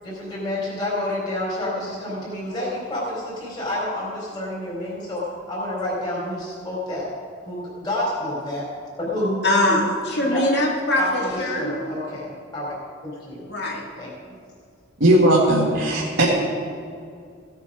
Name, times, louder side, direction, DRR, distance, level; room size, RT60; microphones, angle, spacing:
voice 1, 0.0-7.1 7.4-8.7 9.0-9.8 10.3-10.4 11.0-12.7 13.0-13.4 14.0-14.1, left 1 dB, 20° left, -7 dB, 3.7 m, -29 dB
voice 2, 9.4-11.8 13.5-13.8, left 1 dB, 55° left, -2 dB, 2.4 m, -22 dB
voice 3, 15.0-16.3, right 1 dB, 65° right, -6 dB, 1.9 m, -17 dB
16.5 x 8.2 x 4.9 m, 2.3 s
head